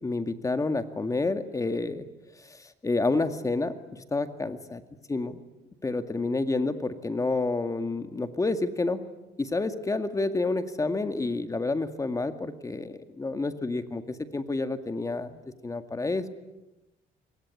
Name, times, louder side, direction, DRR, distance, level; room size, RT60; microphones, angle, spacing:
voice 1, 0.0-2.1 2.4-4.8 5.1-5.4 5.8-9.1 9.4-16.3, left 3 dB, 20° left, 9 dB, 2.0 m, -29 dB
27.0 x 23.0 x 9.7 m, 0.99 s
cardioid pair, 110°, 17 cm